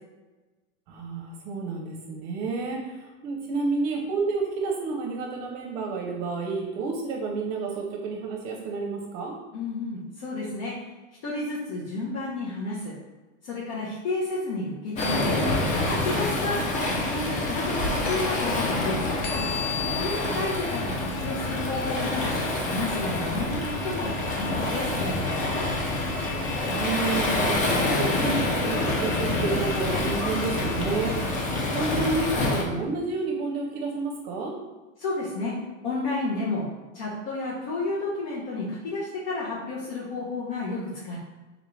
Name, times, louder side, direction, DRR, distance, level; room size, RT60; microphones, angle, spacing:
voice 1, 0.9-9.4 20.2-20.5 26.7-31.2 31.7-34.6, right 4 dB, 50° right, 1 dB, 0.6 m, -30 dB
voice 2, 9.5-10.7 11.2-12.9 13.4-15.3 15.9-19.0 19.9-25.7 31.2-31.3 35.0-35.5 35.8-36.6 36.9-41.2, left 2 dB, 65° left, -7 dB, 1.0 m, -31 dB
sound 1, 15.0-16.5 18.1-31.4, left 8 dB, 85° left, 0.7 m, -40 dB
Waves surf, 15.0-32.6, left 2 dB, 20° left, 0.4 m, -27 dB
3.6 x 2.4 x 3.2 m, 1.2 s
supercardioid pair, 130°, 37 cm